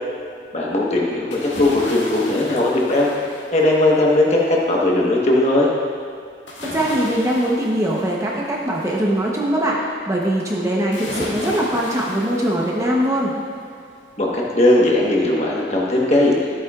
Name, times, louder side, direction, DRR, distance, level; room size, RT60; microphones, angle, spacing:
voice 1, 0.5-3.1 3.5-5.7 14.2-16.3, left 1 dB, 35° left, -3 dB, 1.2 m, -18 dB
sound 1, 1.3-4.1 6.5-9.1 10.9-13.2 13.6-13.7, left 1 dB, 85° left, 2.1 m, -34 dB
voice 2, 6.7-9.8 10.1-13.3, right 1 dB, 15° right, -3 dB, 0.9 m, -21 dB
13.5 x 8.2 x 2.4 m, 2.4 s
head